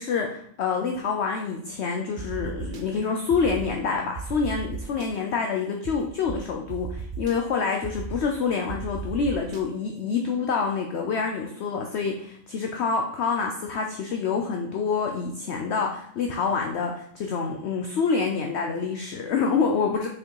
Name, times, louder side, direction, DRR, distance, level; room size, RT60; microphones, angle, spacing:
voice 1, 0.0-20.1, left 5 dB, 55° left, 2 dB, 0.8 m, -27 dB
sound 1, 2.2-2.8 3.3-3.7 4.2-5.1 5.8-5.9 6.3-6.4 6.7-7.3 7.8-8.2 8.7-9.6, right 5 dB, 50° right, 0.7 m, -35 dB
6.0 x 4.6 x 4.7 m, 0.68 s
omnidirectional pair, 1.5 m